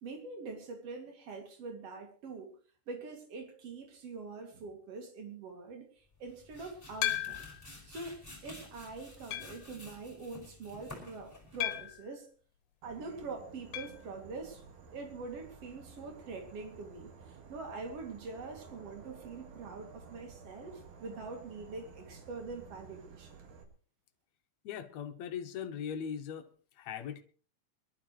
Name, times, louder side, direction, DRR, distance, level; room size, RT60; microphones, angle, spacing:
voice 1, 0.0-2.5 2.9-5.9 6.2-7.4 7.9-12.3 12.8-14.6 14.9-23.4, right 3 dB, 50° right, 4 dB, 3.3 m, -44 dB
sound 1, 6.1-12.0, left 1 dB, 5° left, 4.5 m, -51 dB
sound 2, 7.0-7.7 8.3-8.4 9.3-9.7 11.6-12.1 13.7-14.0 14.3-14.4 14.6-14.7 16.8-16.9, left 14 dB, 85° left, 2.4 m, -35 dB
Insect / Frog, 12.8-23.6, right 5 dB, 75° right, 3.3 m, -53 dB
voice 2, 24.7-26.5 26.8-27.2, left 8 dB, 70° left, 9 dB, 2.1 m, -39 dB
24.0 x 12.0 x 3.1 m, 0.41 s
omnidirectional pair, 3.6 m